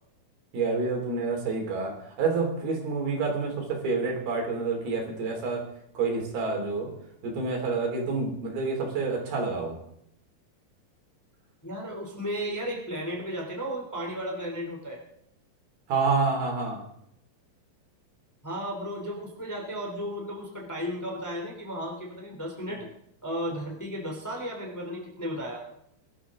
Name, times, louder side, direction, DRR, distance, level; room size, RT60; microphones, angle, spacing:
voice 1, 0.5-5.6 5.9-6.9 7.2-9.8 15.9-16.8, right 4 dB, 85° right, 1 dB, 5.1 m, -28 dB
voice 2, 11.6-15.0 18.4-22.9 23.2-25.7, equal, 5° left, 0 dB, 2.4 m, -34 dB
22.5 x 12.0 x 3.7 m, 0.75 s
omnidirectional pair, 4.2 m